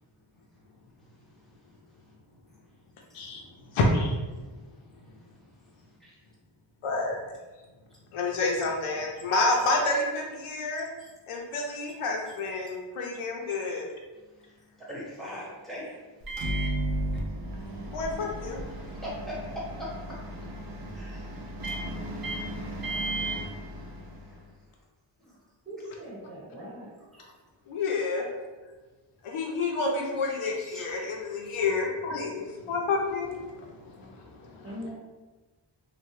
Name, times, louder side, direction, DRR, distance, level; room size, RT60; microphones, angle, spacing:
voice 1, 1.0-2.0 3.1-3.3 4.5-4.8 5.6-6.1 11.0-11.1 14.1-16.3 17.1-17.2 18.9-19.9 20.2-20.3 20.9-21.5 24.3-24.4 25.2-25.4 27.1-27.3 30.4-31.0 31.5-31.6, equal, ahead, -7 dB, 1.1 m, -43 dB
voice 2, 3.7-4.1 6.8-7.2 8.1-10.9 11.3-13.8 17.9-18.6 27.7-28.2 29.2-34.7, left 3 dB, 90° left, 0 dB, 0.6 m, -29 dB
Microwave oven, 16.2-24.4, right 1 dB, 45° right, 0.5 m, -34 dB
voice 3, 25.6-26.9 34.6-34.9, equal, 20° right, -8 dB, 0.9 m, -40 dB
2.8 x 2.0 x 3.0 m, 1.3 s
wide cardioid pair, 60°, 49 cm